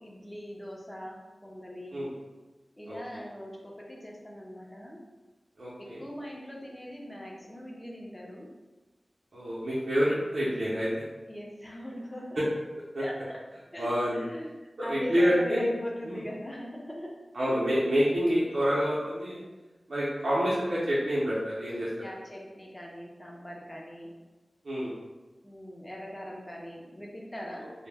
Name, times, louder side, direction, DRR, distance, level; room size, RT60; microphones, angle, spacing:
voice 1, 0.0-2.1 2.8-5.0 5.8-8.5 11.3-12.4 13.0-13.4 13.7-14.5 14.8-17.2 22.0-24.1 25.4-27.7, equal, 15° left, -2 dB, 0.5 m, -41 dB
voice 2, 2.9-3.2 5.6-6.0 9.3-10.9 12.9-13.0 13.8-14.2 14.8-15.7 16.0-16.2 17.3-19.4 19.9-21.9 24.6-24.9, equal, 75° right, -9 dB, 0.6 m, -27 dB
2.1 x 2.1 x 3.3 m, 1.2 s
wide cardioid pair, 85°, 0 cm